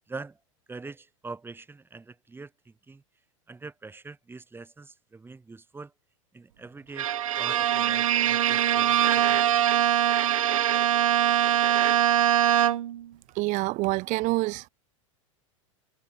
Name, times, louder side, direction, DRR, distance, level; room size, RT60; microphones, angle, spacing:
voice 1, 0.1-0.4 0.7-3.0 3.5-5.9 6.3-7.1 7.4-9.8, right 3 dB, 15° right, 6.9 m, -43 dB
Bowed string instrument, 7.0-13.1, right 11 dB, 80° right, 0.5 m, -23 dB
voice 2, 13.4-14.7, right 22 dB, 45° right, 1.3 m, -27 dB
hypercardioid pair, 95°, 17 cm